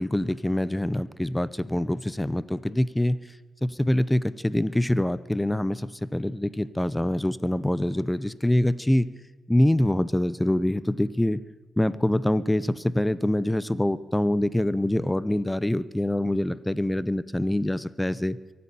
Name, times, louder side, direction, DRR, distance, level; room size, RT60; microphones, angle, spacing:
voice 1, 0.0-3.2 3.6-9.1 9.5-11.4 11.8-18.4, left 1 dB, 10° left, 18 dB, 0.7 m, -25 dB
23.5 x 8.7 x 7.0 m, 1.2 s
cardioid pair, 60°, 0 cm